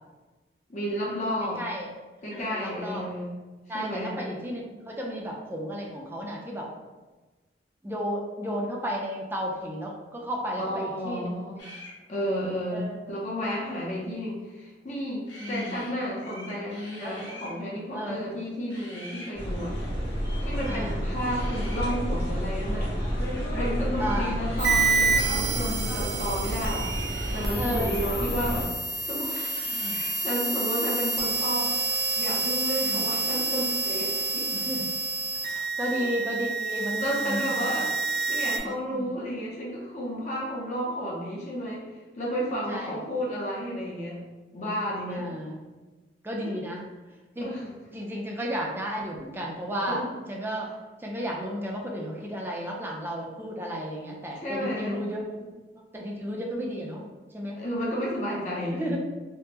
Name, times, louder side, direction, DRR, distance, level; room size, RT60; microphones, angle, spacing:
voice 1, 0.7-1.6 2.2-3.4 3.7-4.2 10.6-11.7 12.1-19.8 20.4-23.0 23.5-26.9 27.3-28.7 29.0-31.8 32.2-34.7 35.9-36.1 37.0-38.0 38.3-41.9 42.1-44.2 44.5-45.3 46.4-46.5 47.4-47.7 49.9-50.1 54.4-55.1 55.4-55.5 57.5-59.0, equal, 40° left, -5 dB, 0.6 m, -32 dB
voice 2, 1.6-1.9 2.3-3.0 3.7-6.7 7.8-11.3 12.7-13.2 15.4-15.8 17.0-17.4 17.9-18.2 20.7-21.0 24.0-24.4 27.6-27.9 29.7-30.0 32.8-33.0 34.6-34.9 35.4-37.6 38.6-39.1 42.7-43.0 45.1-45.6 46.2-46.8 47.4-47.5 47.9-50.0 50.3-50.7 51.0-55.2 55.9-57.0 57.3-57.6 58.7-59.0, equal, 15° right, -2 dB, 0.4 m, -33 dB
sound 1, 11.6-12.0 15.3-15.9 16.2-17.6 18.7-19.3 20.5-20.8 21.2-22.0 23.9-25.4 26.7-28.1 29.3-30.2, left 1 dB, 85° left, 0.9 m, -44 dB
sound 2, 19.3-28.6, equal, 60° left, 1.3 m, -30 dB
sound 3, 24.6-38.6, right 3 dB, 65° right, 0.5 m, -28 dB
3.4 x 2.0 x 2.8 m, 1.2 s
head